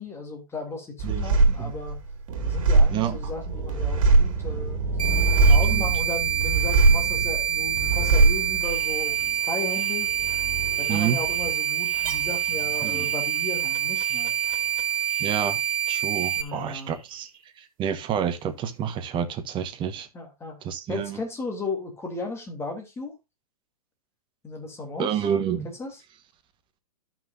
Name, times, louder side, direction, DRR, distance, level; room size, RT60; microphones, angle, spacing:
voice 1, 0.0-2.0 2.4-4.8 5.5-10.1 10.8-14.3 16.4-17.0 20.1-20.6 20.9-23.2 24.4-25.1 25.8-26.0, left 2 dB, 15° left, 2.7 m, -35 dB
sound 1, 1.0-15.9 16.2-17.0, right 3 dB, 60° right, 2.3 m, -24 dB
sound 2, 5.0-16.4, right 10 dB, 85° right, 1.3 m, -26 dB
voice 2, 5.4-5.9 10.9-11.2 12.8-13.1 15.2-15.6 15.9-17.3 17.6-20.1 20.6-21.2 25.0-25.7, right 8 dB, 25° right, 1.2 m, -28 dB
13.5 x 5.9 x 2.6 m
hypercardioid pair, 120°, 19 cm